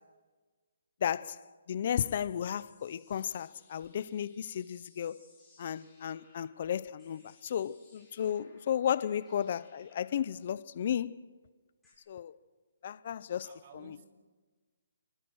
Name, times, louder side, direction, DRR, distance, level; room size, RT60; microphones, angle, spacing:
voice 1, 1.0-1.4 1.7-5.2 5.6-11.1 12.1-12.3 12.8-13.5 13.7-14.0, left 9 dB, 40° left, 0.6 m, -34 dB
sound 1, 2.2-11.9, left 3 dB, ahead, 7.6 m, -65 dB
voice 2, 13.4-14.1, right 5 dB, 35° right, 2.5 m, -55 dB
28.0 x 21.5 x 6.4 m
hypercardioid pair, 170°, 0 cm